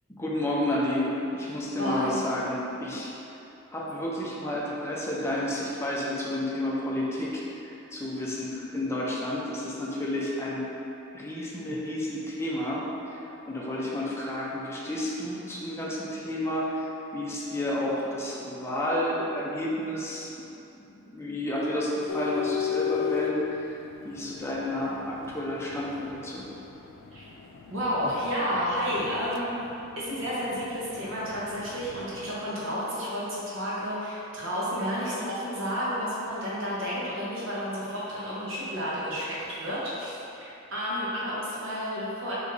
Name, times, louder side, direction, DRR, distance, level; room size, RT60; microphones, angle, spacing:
voice 1, 0.1-3.2 3.7-10.6 11.1-16.9 17.1-20.3 20.7-23.8 24.0-26.5, left 1 dB, 15° left, -5 dB, 0.6 m, -31 dB
voice 2, 1.8-2.2 27.1-27.2 27.7-29.6 30.0-42.4, equal, 70° right, -8 dB, 1.1 m, -31 dB
sound 1, 22.1-32.4, left 8 dB, 75° left, 0.3 m, -37 dB
4.5 x 3.0 x 3.2 m, 2.9 s
head